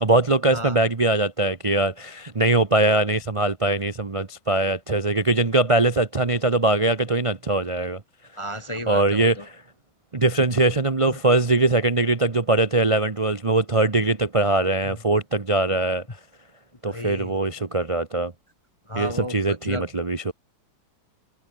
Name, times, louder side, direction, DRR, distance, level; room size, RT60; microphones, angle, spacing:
voice 1, 0.0-8.0 8.9-9.6 10.1-16.0 16.8-18.3 19.0-20.3, right 2 dB, 55° right, 0.3 m, -21 dB
voice 2, 8.4-9.4 11.1-11.2 14.8-15.0 16.9-17.3 18.9-19.8, equal, 25° left, 0.6 m, -33 dB
omnidirectional pair, 2.4 m